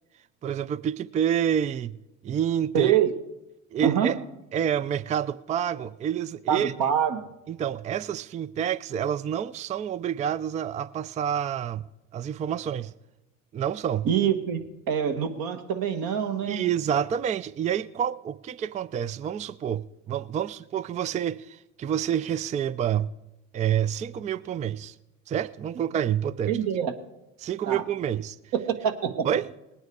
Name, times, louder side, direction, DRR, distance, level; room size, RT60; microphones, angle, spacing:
voice 1, 0.4-1.9 2.2-3.0 3.7-4.2 4.5-6.7 7.5-11.8 12.1-12.9 13.5-14.1 16.4-23.1 23.5-24.9 25.3-26.6 27.4-28.4 29.2-29.5, right 9 dB, 20° right, 0.3 m, -28 dB
voice 2, 2.7-3.1 3.8-4.1 6.5-7.3 14.1-16.6 26.5-26.9 27.7-27.8 28.8-29.3, right 8 dB, 60° right, 1.6 m, -25 dB
19.5 x 9.2 x 4.8 m
supercardioid pair, 85°, 39 cm